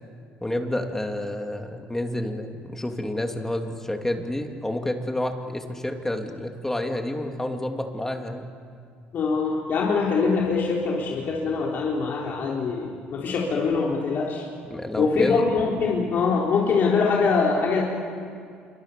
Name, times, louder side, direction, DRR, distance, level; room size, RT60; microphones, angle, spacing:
voice 1, 0.4-8.5 14.7-15.4, left 1 dB, 10° left, 4 dB, 2.9 m, -29 dB
voice 2, 9.1-14.5 15.0-17.8, left 4 dB, 55° left, -3 dB, 3.8 m, -23 dB
27.5 x 24.0 x 7.0 m, 2.2 s
supercardioid pair, 75°, 4 cm